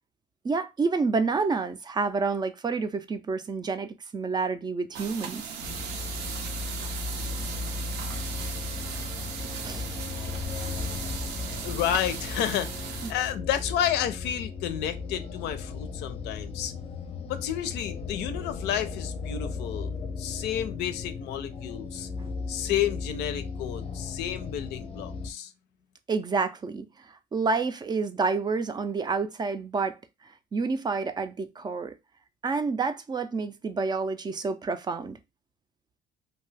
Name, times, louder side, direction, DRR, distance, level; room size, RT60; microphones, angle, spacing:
voice 1, 0.4-5.4 9.6-9.8 26.1-26.9 27.3-30.0 30.5-31.9 32.4-35.2, right 4 dB, 25° right, 0.3 m, -28 dB
sound 1, 4.9-13.1, right 7 dB, 85° right, 0.6 m, -37 dB
sound 2, 5.6-25.3, left 4 dB, 35° left, 0.5 m, -36 dB
voice 2, 11.6-16.7 17.3-19.9 20.2-22.1 22.5-25.5, left 10 dB, 85° left, 0.5 m, -31 dB
2.6 x 2.3 x 3.2 m
cardioid pair, 110°, 17 cm